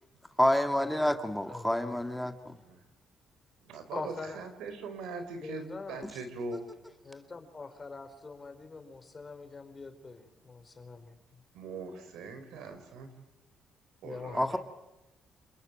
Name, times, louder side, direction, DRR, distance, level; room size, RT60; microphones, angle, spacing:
voice 1, 0.4-2.5 14.3-14.6, left 1 dB, 5° left, 7 dB, 1.9 m, -28 dB
voice 2, 1.4-2.0 3.9-4.4 5.4-6.1 7.0-11.2 14.0-14.6, left 3 dB, 30° left, 8 dB, 4.3 m, -43 dB
voice 3, 2.4-2.8 3.6-6.7 11.5-13.1 14.0-14.4, right 4 dB, 85° right, 9 dB, 4.6 m, -41 dB
28.0 x 20.5 x 9.1 m, 0.98 s
cardioid pair, 90°, 0 cm